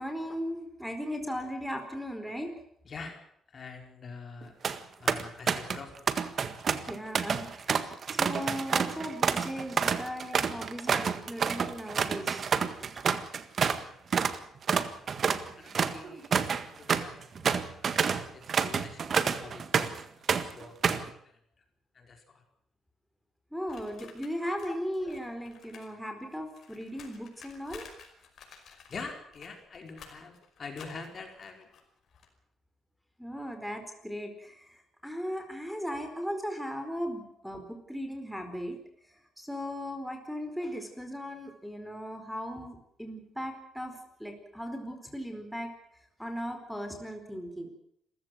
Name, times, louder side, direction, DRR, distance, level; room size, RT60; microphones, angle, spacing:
voice 1, 0.0-2.5 6.9-12.5 12.8-12.9 23.5-27.9 33.2-34.8 35.0-38.8 39.4-43.9 44.2-45.7 46.2-47.7, equal, ahead, 6 dB, 4.5 m, -37 dB
voice 2, 2.8-3.2 3.5-4.7 5.0-6.2 13.8-14.0 14.8-21.4 21.9-22.4 24.7-24.8 28.9-31.7, left 4 dB, 45° left, 4 dB, 4.7 m, -46 dB
sound 1, 4.4-4.8 5.1-5.8 6.1-13.8 14.1-14.4 14.7-20.0 20.3-21.1, right 6 dB, 50° right, 1.7 m, -28 dB
sound 2, 23.7-25.9 26.2-32.3, left 6 dB, 65° left, 5.4 m, -53 dB
27.5 x 15.0 x 7.8 m, 0.70 s
cardioid pair, 90°, 0 cm